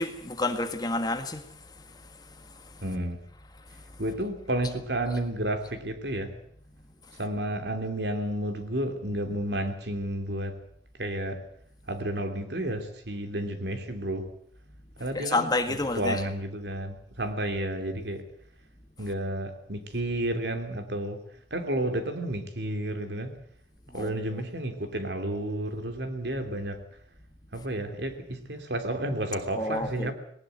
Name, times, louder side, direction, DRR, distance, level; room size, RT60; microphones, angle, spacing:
voice 1, 0.0-1.4 15.1-16.2 23.9-24.4 29.6-30.1, left 2 dB, 20° left, 1.6 m, -29 dB
voice 2, 2.8-3.2 4.0-6.3 7.2-10.6 11.0-11.4 11.9-14.3 15.0-18.2 19.0-21.2 21.5-23.4 23.9-26.8 27.5-30.1, right 1 dB, 65° right, 2.9 m, -31 dB
19.5 x 19.0 x 7.9 m
head